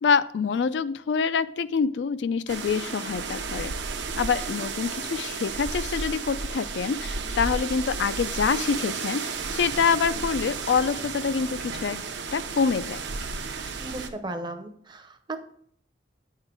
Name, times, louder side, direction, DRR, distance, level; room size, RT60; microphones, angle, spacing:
voice 1, 0.0-3.7 4.1-12.0 12.3-13.0, left 6 dB, 70° left, 13 dB, 0.3 m, -26 dB
sound 1, 2.5-14.1, right 4 dB, 75° right, 0.7 m, -33 dB
voice 2, 13.8-15.4, right 2 dB, 25° right, 7 dB, 0.6 m, -35 dB
8.9 x 3.7 x 4.6 m, 0.65 s
head